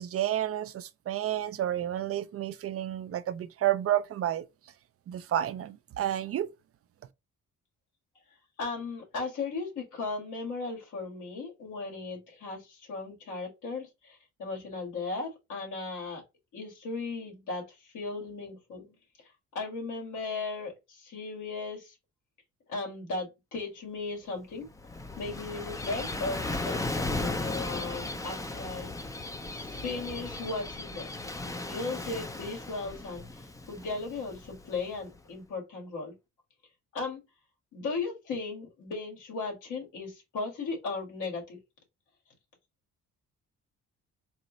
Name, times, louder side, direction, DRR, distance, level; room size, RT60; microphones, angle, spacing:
voice 1, 0.0-4.4 5.1-6.5, right 12 dB, 50° right, 0.5 m, -30 dB
voice 2, 8.6-16.2 16.5-21.9 22.7-24.7 25.2-28.9 29.5-36.1 36.9-37.2 37.7-41.6, left 3 dB, 80° left, 2.0 m, -37 dB
Gull seagull / Waves surf, 24.5-35.1, left 2 dB, 10° left, 0.5 m, -36 dB
4.1 x 2.0 x 3.9 m
cardioid pair, 90°, 30 cm